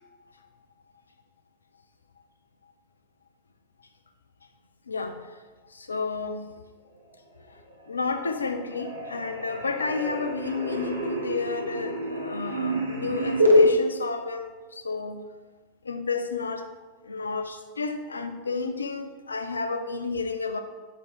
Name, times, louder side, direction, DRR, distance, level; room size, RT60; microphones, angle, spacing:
voice 1, 4.9-5.3 5.7-6.5 7.9-15.2 15.8-16.7 17.0-20.6, left 4 dB, 75° left, 7 dB, 0.3 m, -31 dB
sound 1, 7.7-8.2 8.5-13.7, equal, 85° right, 0.5 m, -26 dB
4.6 x 2.6 x 3.8 m, 1.3 s
figure-of-eight pair, 90°, 0 cm